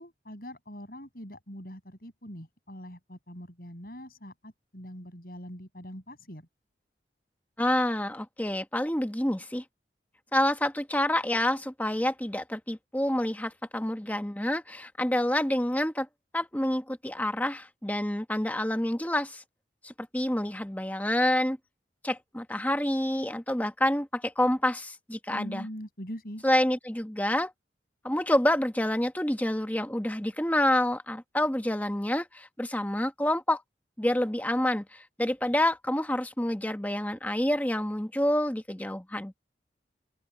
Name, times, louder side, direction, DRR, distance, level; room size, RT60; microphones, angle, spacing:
voice 1, 0.0-6.5 25.3-26.4, equal, 55° left, 7.5 m, -42 dB
voice 2, 7.6-9.6 10.3-16.1 16.3-19.4 19.8-21.6 22.0-25.7 26.4-27.5 28.0-33.6 34.0-39.3, left 1 dB, 10° left, 1.1 m, -28 dB
head